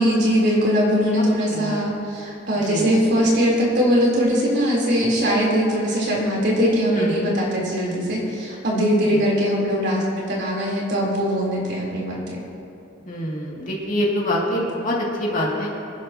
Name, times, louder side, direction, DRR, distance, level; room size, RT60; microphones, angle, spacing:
voice 1, 0.0-12.4, equal, 55° right, -4 dB, 3.8 m, -21 dB
voice 2, 6.9-7.3 9.1-9.2 13.1-15.7, left 1 dB, 40° left, -4 dB, 2.5 m, -25 dB
26.0 x 11.0 x 3.0 m, 2.7 s
head